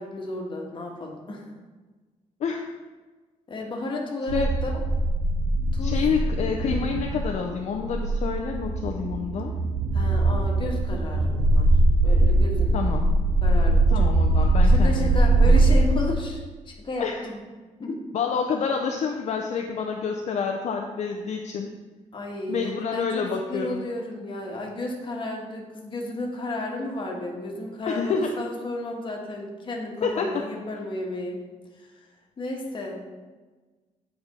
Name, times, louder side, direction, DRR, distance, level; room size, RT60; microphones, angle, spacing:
voice 1, 0.0-1.5 3.5-4.8 5.7-6.0 6.7-6.9 9.9-11.8 12.0-12.9 13.4-14.1 14.6-17.4 17.8-18.0 22.1-23.2 23.5-31.4 31.8-31.9 32.4-33.0, left 1 dB, 40° left, 0 dB, 1.4 m, -33 dB
sound 1, 4.3-15.9, right 2 dB, 85° right, 0.7 m, -21 dB
voice 2, 5.8-9.5 12.7-13.0 13.9-15.1 15.4-15.6 17.0-17.2 18.1-21.7 22.5-23.8 27.9-28.3 30.0-30.4, left 6 dB, 60° left, 2 dB, 0.6 m, -28 dB
8.8 x 4.3 x 4.1 m, 1.3 s
cardioid pair, 125°, 13 cm